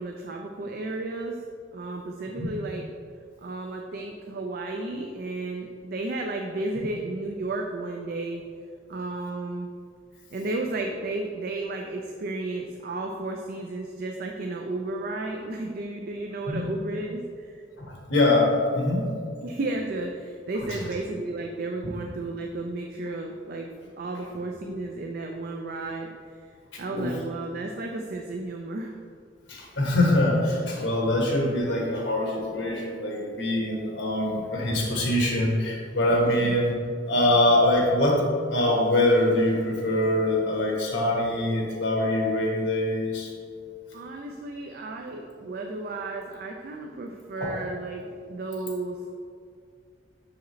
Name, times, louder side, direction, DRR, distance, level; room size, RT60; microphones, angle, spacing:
voice 1, 0.0-1.4 1.7-2.9 3.4-8.4 8.9-9.7 10.3-17.6 19.4-23.7 24.0-26.1 26.8-29.0 36.2-36.5 43.9-49.2, right 2 dB, 55° right, 2 dB, 0.4 m, -33 dB
voice 2, 17.8-19.0 26.9-27.1 29.5-36.7 37.0-38.2 38.5-43.3 47.4-47.5, left 1 dB, 80° left, -2 dB, 1.4 m, -23 dB
6.6 x 4.8 x 3.1 m, 2.2 s
head